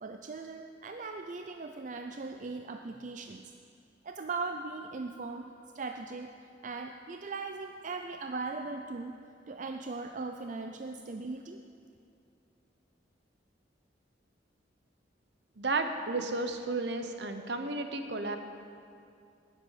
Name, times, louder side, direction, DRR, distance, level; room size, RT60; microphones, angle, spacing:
voice 1, 0.0-3.4 4.0-5.5 5.7-6.3 6.6-9.2 9.5-11.6, right 3 dB, 45° right, 5 dB, 0.4 m, -39 dB
voice 2, 15.6-18.4, right 3 dB, 65° right, 7 dB, 0.9 m, -33 dB
10.5 x 7.6 x 9.1 m, 2.5 s
head